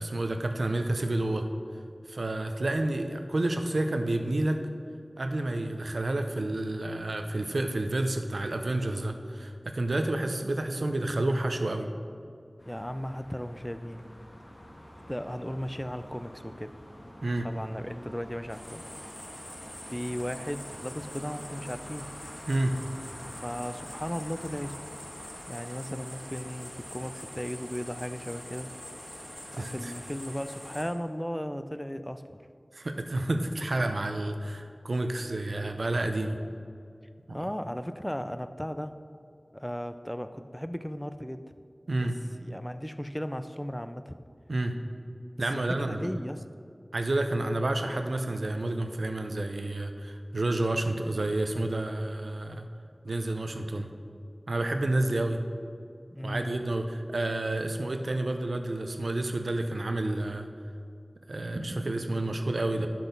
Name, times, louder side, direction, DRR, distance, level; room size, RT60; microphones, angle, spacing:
voice 1, 0.0-1.5 2.1-4.6 5.2-11.9 17.2-17.5 22.5-22.7 29.5-29.9 32.7-36.4 37.3-37.4 41.9-42.2 44.5-44.7 45.4-46.1 46.9-52.7 53.0-53.9 54.5-55.4 56.2-60.5 61.3-62.9, right 2 dB, 90° right, 6 dB, 0.6 m, -29 dB
sound 1, 12.6-30.6, equal, 50° left, 1.7 m, -49 dB
voice 2, 12.7-14.1 15.1-16.7 17.4-18.8 19.9-22.1 23.4-24.8 25.5-28.7 29.5-32.4 37.3-38.9 39.5-41.4 42.0-42.1 42.4-44.2 45.5-46.4 56.1-56.5, equal, 10° left, 10 dB, 0.4 m, -36 dB
sound 2, 18.5-30.8, equal, 30° left, 2.2 m, -44 dB
10.0 x 6.0 x 5.3 m, 2.3 s
wide cardioid pair, 45°, 0 cm